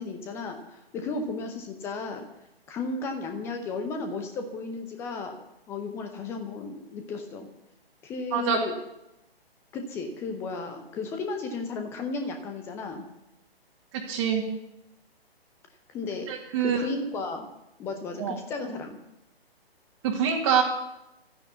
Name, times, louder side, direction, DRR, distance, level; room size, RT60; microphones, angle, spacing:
voice 1, 0.0-2.2 2.7-5.4 5.7-7.5 8.0-8.8 9.7-13.0 15.9-16.3 16.6-17.5 17.8-19.0, left 3 dB, 10° left, 5 dB, 0.7 m, -34 dB
voice 2, 14.1-14.4 16.3-16.8 18.2-18.4 20.0-20.6, right 7 dB, 25° right, -2 dB, 1.9 m, -25 dB
13.0 x 9.6 x 8.3 m, 0.90 s
figure-of-eight pair, 135°, 31 cm